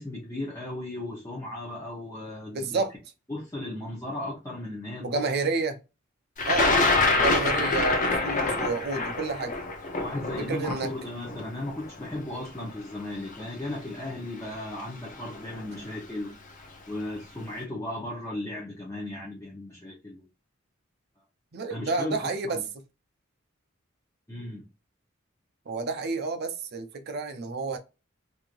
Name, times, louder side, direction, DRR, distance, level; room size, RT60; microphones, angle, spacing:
voice 1, 0.0-2.8 3.3-5.2 10.0-16.4 16.9-20.3 21.7-22.6 24.3-24.7, left 1 dB, 15° left, 0.9 m, -36 dB
voice 2, 2.5-2.9 5.0-5.8 6.5-6.7 7.2-9.5 10.4-10.9 21.5-22.6 25.7-27.8, right 3 dB, 50° right, 0.5 m, -30 dB
Thunder, 6.4-12.4 13.3-13.4 14.5-14.8 15.1-15.6, left 3 dB, 40° left, 0.7 m, -25 dB
3.1 x 2.6 x 2.5 m
head